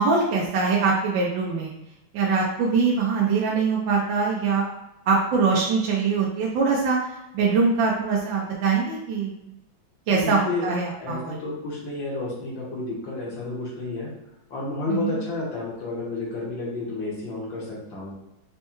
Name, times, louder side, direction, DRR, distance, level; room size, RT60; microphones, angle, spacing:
voice 1, 0.0-1.7 2.1-4.7 5.1-9.3 10.1-11.4 14.9-15.2, right 4 dB, 75° right, -3 dB, 1.3 m, -23 dB
voice 2, 10.1-10.7 11.0-14.1 14.5-18.1, left 2 dB, 75° left, -4 dB, 2.0 m, -31 dB
5.2 x 2.3 x 2.9 m, 0.89 s
omnidirectional pair, 2.1 m